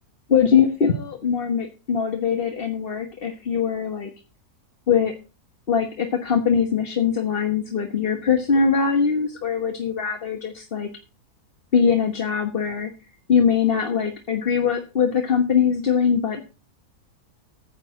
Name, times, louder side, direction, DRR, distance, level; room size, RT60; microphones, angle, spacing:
voice 1, 0.3-4.1 4.9-5.1 5.7-10.9 11.7-12.9 13.3-16.4, left 6 dB, 40° left, 5 dB, 1.4 m, -22 dB
9.8 x 6.0 x 7.9 m, 0.31 s
omnidirectional pair, 1.6 m